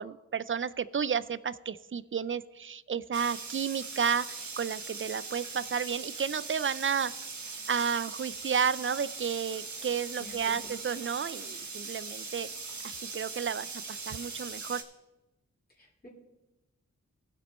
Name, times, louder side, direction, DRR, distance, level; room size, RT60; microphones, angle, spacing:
voice 1, 0.0-7.1 7.5-12.5 12.8-14.8, right 7 dB, 40° right, 18 dB, 0.4 m, -32 dB
sound 1, 3.1-14.8, right 4 dB, 70° right, 1.5 m, -41 dB
voice 2, 10.2-10.6 15.8-16.1, equal, 30° left, -4 dB, 2.7 m, -48 dB
18.5 x 6.2 x 4.2 m, 1.0 s
wide cardioid pair, 70°, 30 cm